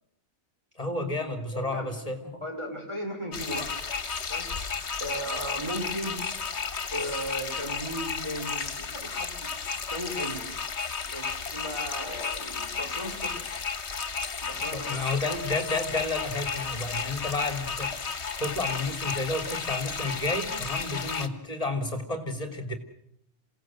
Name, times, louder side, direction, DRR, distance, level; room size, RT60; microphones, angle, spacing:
voice 1, 0.8-2.4 14.7-17.9 18.4-22.8, left 2 dB, 30° left, 7 dB, 3.2 m, -31 dB
voice 2, 1.3-1.9 2.4-4.5 5.0-6.3 6.9-9.4 9.9-10.4 11.0-13.4 14.4-15.1, equal, 25° right, 2 dB, 5.3 m, -36 dB
sound 1, 3.3-21.3, left 5 dB, 70° left, 1.6 m, -33 dB
27.5 x 17.0 x 7.8 m, 0.74 s
omnidirectional pair, 1.2 m